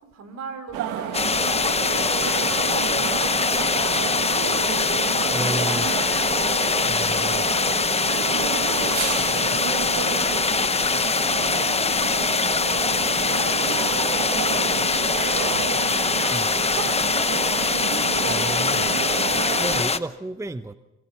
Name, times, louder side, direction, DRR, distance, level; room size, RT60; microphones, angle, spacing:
voice 1, 0.0-9.0 9.6-10.4 10.9-12.4 12.8-13.7 14.5-17.7 18.1-19.8, right 5 dB, 55° right, 8 dB, 4.3 m, -39 dB
Walla medium sized church, 0.7-19.8, right 9 dB, 85° right, 1.8 m, -30 dB
sound 1, 1.1-20.0, left 4 dB, 20° left, 0.8 m, -23 dB
voice 2, 5.3-5.9 6.8-7.4 9.2-9.6 10.1-10.3 16.3-16.5 18.2-18.9 19.6-20.7, right 2 dB, 10° right, 12 dB, 0.8 m, -32 dB
25.5 x 23.0 x 5.6 m, 1.1 s
cardioid pair, 90°, 30 cm